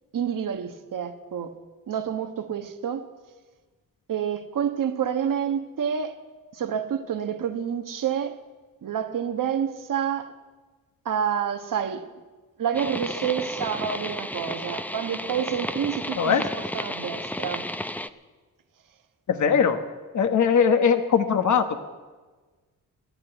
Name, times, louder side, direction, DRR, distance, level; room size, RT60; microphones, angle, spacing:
voice 1, 0.1-1.6 1.9-3.1 4.1-6.1 6.5-8.4 8.8-10.3 11.0-12.1 12.6-16.3 16.7-17.7, right 8 dB, 65° right, 1.3 m, -28 dB
sound 1, 12.7-18.1, left 1 dB, 5° left, 0.6 m, -33 dB
voice 2, 19.3-19.8 20.1-21.8, left 6 dB, 55° left, 1.2 m, -20 dB
15.5 x 11.0 x 8.0 m
cardioid pair, 85°, 35 cm